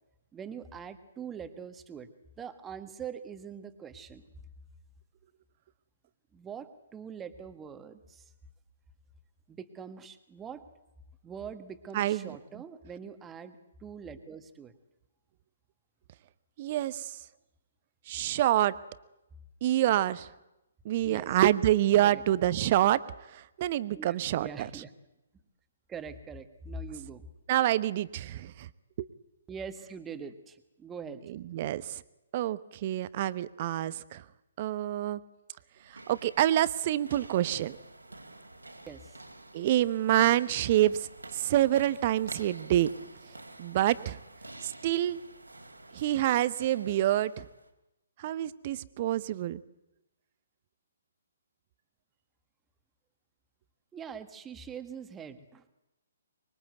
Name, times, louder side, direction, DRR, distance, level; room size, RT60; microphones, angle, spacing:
voice 1, 0.3-2.1 2.4-4.2 6.3-8.2 9.5-10.6 11.2-14.7 21.0-21.4 22.0-22.2 24.0-24.9 25.9-27.2 29.5-31.2 38.9-39.2 53.9-55.6, right 6 dB, 15° right, 10 dB, 1.7 m, -43 dB
voice 2, 11.9-12.4 16.6-17.1 18.1-18.8 19.6-20.3 20.8-23.0 23.3-24.7 27.5-28.7 29.0-29.1 31.3-32.0 32.3-34.2 34.6-35.2 36.1-37.8 39.5-41.1 41.3-42.9 43.6-44.2 44.6-45.2 45.9-47.4 48.2-49.6, right 13 dB, 40° right, 17 dB, 1.0 m, -27 dB
sound 1, 35.7-47.7, right 2 dB, 85° right, 3.3 m, -49 dB
24.5 x 22.5 x 8.1 m, 0.93 s
figure-of-eight pair, 130°, 0 cm